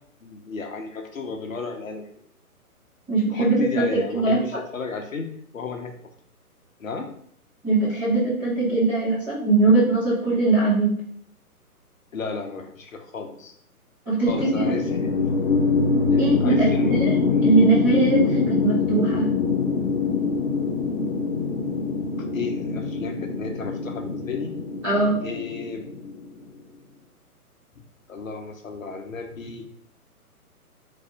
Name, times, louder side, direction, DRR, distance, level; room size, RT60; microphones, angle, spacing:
voice 1, 0.2-2.1 3.3-5.3 5.5-5.9 6.8-7.1 12.1-13.5 14.3-15.2 16.1-17.5 22.3-24.5 25.2-25.8 27.7-27.8 28.1-29.7, left 4 dB, 60° left, 4 dB, 0.9 m, -33 dB
voice 2, 3.1-3.6 4.1-4.6 7.6-11.0 14.1-14.7 16.2-17.1 17.4-19.3 24.8-25.2, right 3 dB, 5° right, -14 dB, 0.6 m, -21 dB
sound 1, 14.3-26.4, left 4 dB, 35° left, 0.6 m, -24 dB
4.1 x 2.5 x 4.8 m, 0.63 s
figure-of-eight pair, 130°, 45 cm